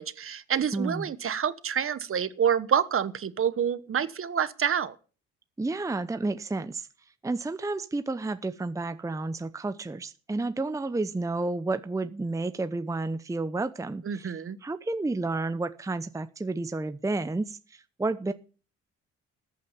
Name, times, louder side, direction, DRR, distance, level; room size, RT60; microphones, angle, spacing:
voice 1, 0.0-4.9 14.1-14.6, right 8 dB, 45° right, 1.2 m, -27 dB
voice 2, 0.7-1.1 5.6-6.9 7.2-14.3 14.6-18.3, right 2 dB, 10° right, 0.7 m, -31 dB
14.0 x 8.6 x 7.2 m
cardioid pair, 90°, 30 cm